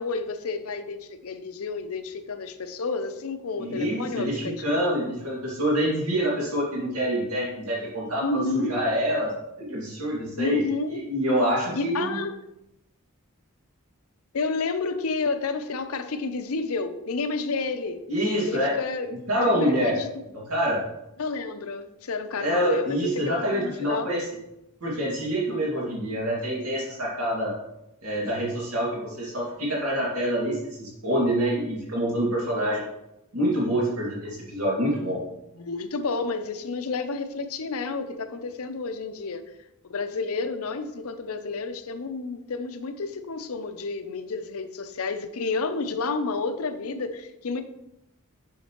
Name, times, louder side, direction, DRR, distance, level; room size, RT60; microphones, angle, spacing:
voice 1, 0.0-4.9 8.2-8.8 10.3-11.0 11.7-12.4 14.3-18.0 18.4-19.1 19.6-20.1 20.3-20.4 21.2-24.1 35.6-39.5 39.8-47.6, left 3 dB, 70° left, 9 dB, 0.6 m, -30 dB
voice 2, 3.6-9.3 9.6-10.6 10.9-12.2 18.1-18.8 19.3-20.0 20.5-20.8 22.4-24.2 24.8-27.5 28.0-32.9 33.3-35.2, equal, 75° right, -5 dB, 2.1 m, -26 dB
7.2 x 6.5 x 3.0 m, 0.87 s
head